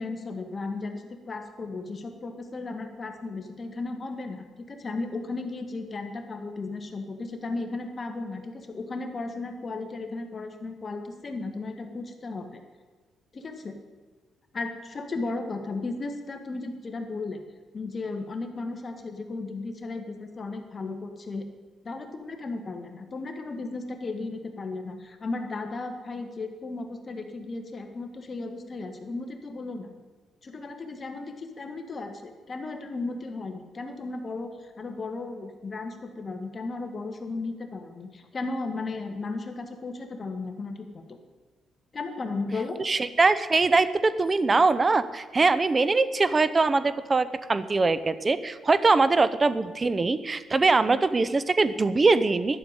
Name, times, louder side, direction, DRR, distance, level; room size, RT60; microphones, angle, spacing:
voice 1, 0.0-12.6 13.3-13.7 14.5-17.4 17.7-21.5 21.8-29.9 30.4-41.0 41.9-42.8, left 3 dB, 35° left, 5 dB, 1.6 m, -35 dB
voice 2, 42.8-52.6, right 3 dB, 30° right, 14 dB, 0.7 m, -22 dB
11.5 x 6.9 x 9.6 m, 1.4 s
cardioid pair, 90°, 0 cm